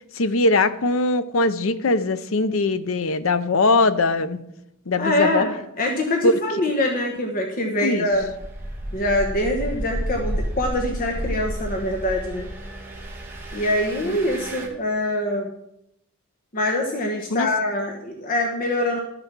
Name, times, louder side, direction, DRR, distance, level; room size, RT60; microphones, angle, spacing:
voice 1, 0.2-4.4 4.9-5.5 6.2-6.3 7.8-8.1 17.3-17.5, left 2 dB, 75° left, 13 dB, 0.7 m, -21 dB
voice 2, 5.0-8.3 8.9-12.5 13.5-15.5 16.5-19.0, left 1 dB, 45° left, 2 dB, 1.2 m, -24 dB
Engine, 8.1-14.7, right 1 dB, 10° right, 2.4 m, -31 dB
12.5 x 6.9 x 6.0 m, 0.80 s
head